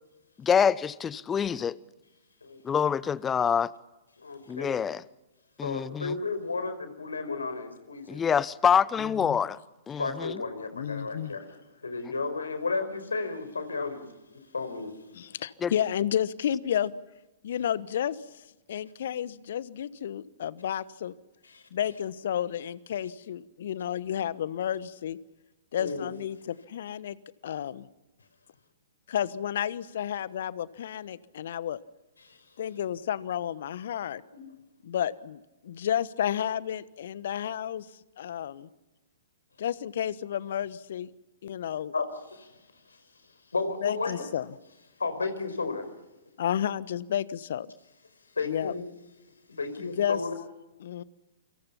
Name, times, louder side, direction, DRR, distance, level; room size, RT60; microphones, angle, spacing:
voice 1, 0.4-1.8 2.6-3.7 4.5-5.0 5.6-6.2 8.1-9.6 9.9-10.4 15.6-15.7, left 7 dB, 15° left, 0.8 m, -26 dB
voice 2, 4.2-4.8 5.6-8.2 10.0-14.0 14.3-14.9 21.4-21.6 25.8-26.1 32.2-32.5 34.3-34.5 41.9-42.5 42.9-43.0 43.5-44.3 45.0-45.8 48.3-48.8 49.5-50.3, left 4 dB, 75° left, 4.8 m, -33 dB
voice 3, 9.0-9.4 10.7-11.4 15.1-16.9 17.4-21.1 21.7-25.2 25.7-27.2 27.4-27.9 29.1-31.8 32.6-34.2 34.8-37.9 38.2-38.7 39.6-41.1 41.4-41.9 43.8-44.5 46.4-47.7 48.4-48.7 49.8-50.2 50.8-51.0, left 10 dB, 55° left, 1.2 m, -31 dB
29.0 x 26.0 x 5.8 m
figure-of-eight pair, 115°, 0 cm